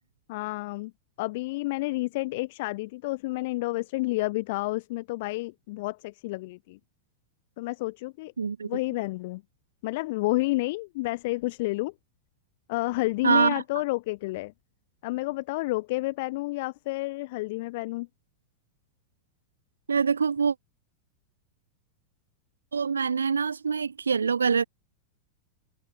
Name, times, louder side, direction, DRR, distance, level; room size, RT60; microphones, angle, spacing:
voice 1, 0.3-0.9 1.2-6.8 7.6-8.3 8.6-9.4 9.8-11.9 12.7-14.5 15.0-18.1, left 21 dB, 50° left, 7.9 m, -30 dB
voice 2, 8.4-8.7 13.2-13.6 19.9-20.5 22.7-24.6, right 5 dB, 75° right, 4.0 m, -24 dB
figure-of-eight pair, 90°, 0 cm